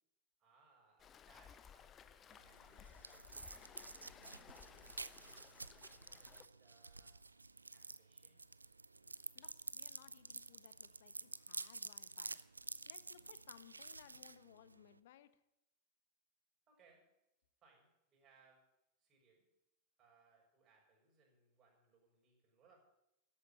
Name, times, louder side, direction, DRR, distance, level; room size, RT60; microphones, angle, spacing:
voice 1, 0.4-8.5 16.7-17.3 17.6-19.5 20.0-22.8, right 4 dB, 30° right, -1 dB, 6.1 m, -72 dB
Waves surf, 1.0-6.5, left 8 dB, 25° left, 0.8 m, -60 dB
sound 1, 2.3-15.0, right 3 dB, 80° right, 0.4 m, -51 dB
voice 2, 9.3-12.5 12.9-15.4, left 11 dB, 55° left, 14 dB, 1.0 m, -63 dB
13.0 x 8.7 x 8.9 m, 0.85 s
figure-of-eight pair, 90°, 0 cm